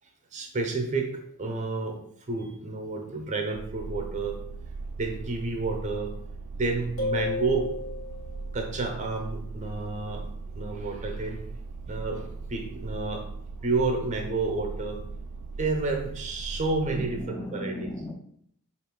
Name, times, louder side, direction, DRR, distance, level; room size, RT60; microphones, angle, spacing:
voice 1, 0.3-2.0 2.3-4.4 5.0-6.1 6.5-7.7 8.5-10.2 10.5-11.4 11.9-13.2 13.6-15.0 15.6-17.1 17.5-17.7, right 3 dB, 35° right, 0.6 m, -30 dB
sound 1, 3.5-17.3, right 3 dB, 70° right, 0.3 m, -39 dB
sound 2, 7.0-8.5, left 3 dB, 80° left, 1.1 m, -32 dB
voice 2, 16.9-18.1, left 1 dB, 10° left, 0.4 m, -37 dB
4.2 x 2.5 x 3.7 m
head